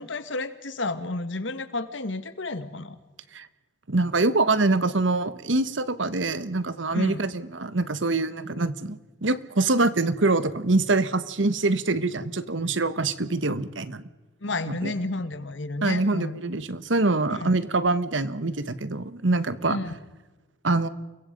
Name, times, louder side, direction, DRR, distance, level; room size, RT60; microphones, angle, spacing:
voice 1, 0.0-3.0 6.9-7.2 14.4-16.4 17.3-17.5 19.7-19.9, left 2 dB, 80° left, 11 dB, 1.8 m, -31 dB
voice 2, 3.9-14.0 14.7-14.9 15.8-19.8 20.6-20.9, right 2 dB, 80° right, 14 dB, 1.3 m, -25 dB
29.0 x 23.0 x 5.3 m, 1.2 s
head